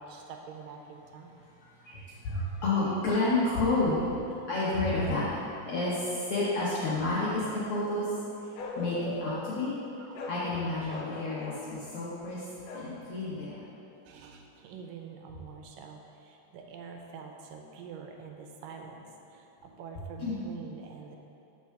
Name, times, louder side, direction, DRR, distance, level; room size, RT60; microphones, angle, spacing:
voice 1, 0.0-1.4 1.8-2.1 8.6-8.7 10.0-10.3 14.0-21.2, right 5 dB, 90° right, 3 dB, 2.4 m, -46 dB
voice 2, 1.8-4.0 4.5-5.3 5.7-8.1 8.8-9.7 10.3-12.5 12.7-13.6 20.2-20.4, left 2 dB, 65° left, -8 dB, 1.6 m, -30 dB
Bark, 8.5-9.4 10.1-10.4 10.9-11.6 12.6-12.9, left 3 dB, 80° left, 2.4 m, -40 dB
7.0 x 4.6 x 6.4 m, 2.7 s
omnidirectional pair, 3.8 m